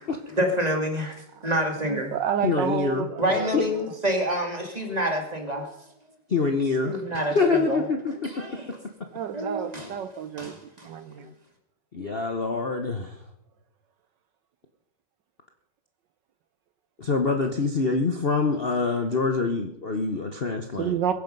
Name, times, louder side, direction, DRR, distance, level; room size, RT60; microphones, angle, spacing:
voice 1, 0.0-1.2 1.4-2.1 3.2-5.7 6.8-7.8 8.2-8.8 9.3-10.0 10.4-10.9, equal, 20° right, 3 dB, 2.5 m, -28 dB
voice 2, 1.9-3.5 9.1-11.3 20.8-21.1, right 9 dB, 70° right, 10 dB, 1.3 m, -30 dB
voice 3, 2.4-3.1 3.5-3.6 6.3-8.1 11.2-11.3 11.9-13.1 17.0-21.0, left 4 dB, 40° left, 4 dB, 1.0 m, -25 dB
22.5 x 9.9 x 5.4 m, 0.80 s
omnidirectional pair, 2.1 m